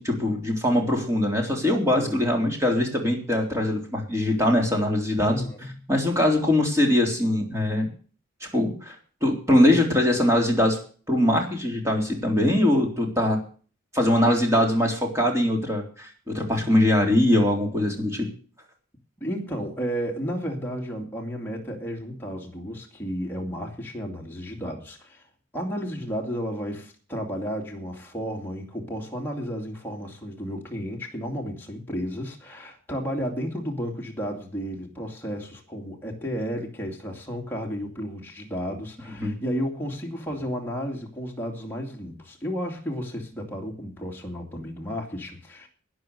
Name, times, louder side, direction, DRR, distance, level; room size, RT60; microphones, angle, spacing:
voice 1, 0.0-5.4 5.9-7.9 8.4-9.0 9.2-10.8 11.1-13.4 13.9-18.3 39.2-39.4, left 1 dB, 15° right, 1 dB, 3.6 m, -22 dB
voice 2, 1.9-2.3 5.3-5.8 19.2-25.3 25.5-45.7, equal, 10° left, -1 dB, 2.5 m, -32 dB
12.0 x 10.0 x 6.6 m, 0.40 s
head